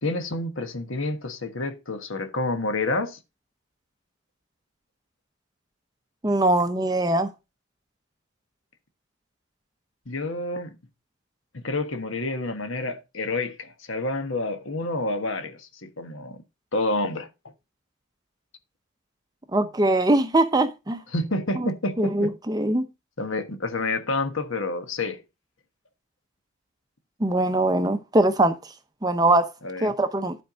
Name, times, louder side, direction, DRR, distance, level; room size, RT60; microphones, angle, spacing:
voice 1, 0.0-3.2 10.1-10.8 11.5-16.4 16.7-17.3 21.1-22.3 23.2-25.2 29.6-29.9, left 2 dB, 65° left, 1.4 m, -29 dB
voice 2, 6.2-7.3 19.5-21.0 22.0-22.9 27.2-28.5 29.0-29.5 29.8-30.4, right 2 dB, 20° right, 0.6 m, -22 dB
11.5 x 4.5 x 5.0 m
head